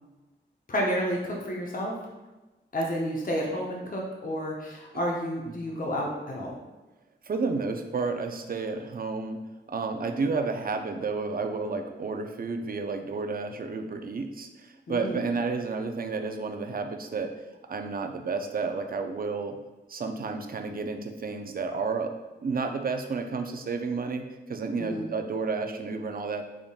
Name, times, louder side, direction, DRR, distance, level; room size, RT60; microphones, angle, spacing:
voice 1, 0.7-1.9 2.7-6.6 14.9-15.2 24.8-25.0, equal, 45° left, -2 dB, 0.7 m, -30 dB
voice 2, 7.3-9.4 9.7-17.3 17.7-19.6 19.9-22.1 22.4-26.4, right 4 dB, 50° right, 6 dB, 0.4 m, -31 dB
3.8 x 3.6 x 2.3 m, 1.1 s
wide cardioid pair, 55°, 19 cm